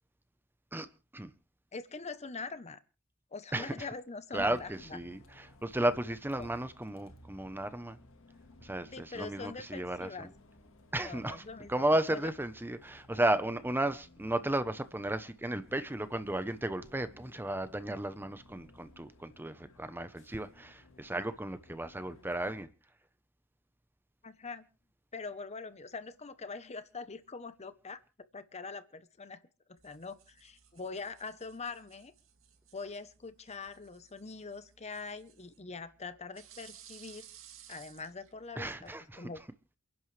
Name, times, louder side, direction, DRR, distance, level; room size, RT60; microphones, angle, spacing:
voice 1, 1.7-2.8 3.3-5.0 6.4-6.5 8.9-10.3 11.0-12.3 24.2-24.6 25.1-28.0 28.3-29.4 29.7-32.1 32.7-37.3 37.7-38.9 39.2-39.4, left 4 dB, 30° left, 0.9 m, -43 dB
voice 2, 3.5-3.9 4.3-8.0 8.6-10.3 10.9-22.7 38.6-39.3, right 1 dB, 10° right, 0.8 m, -34 dB
Bus, 4.3-22.6, left 1 dB, 65° left, 1.7 m, -59 dB
sound 1, 29.8-39.0, right 9 dB, 65° right, 2.5 m, -58 dB
28.5 x 10.5 x 3.3 m
head